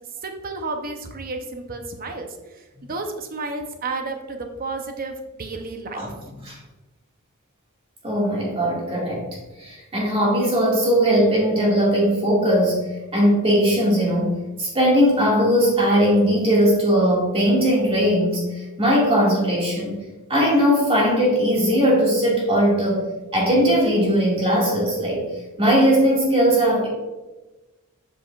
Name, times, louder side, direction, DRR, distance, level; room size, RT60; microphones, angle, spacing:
voice 1, 0.2-2.3 2.5-6.1, right 3 dB, 40° right, 5 dB, 0.7 m, -32 dB
voice 2, 8.0-9.3 9.6-12.8 13.1-20.0 20.3-23.1 23.3-25.2 25.6-26.9, equal, 25° right, -4 dB, 2.0 m, -19 dB
8.3 x 4.9 x 2.4 m, 1.1 s
head